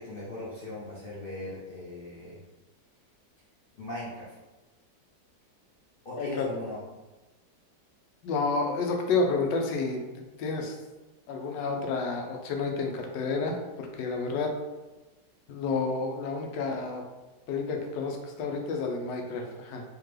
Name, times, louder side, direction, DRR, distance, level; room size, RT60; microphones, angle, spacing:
voice 1, 0.0-2.4 3.8-4.4 6.0-6.8, left 1 dB, 60° left, -7 dB, 0.5 m, -39 dB
voice 2, 8.2-10.0 10.4-10.8 11.3-14.5 15.5-17.0 17.5-19.8, left 4 dB, 85° left, 2 dB, 1.3 m, -30 dB
3.6 x 2.8 x 3.2 m, 1.1 s
omnidirectional pair, 1.9 m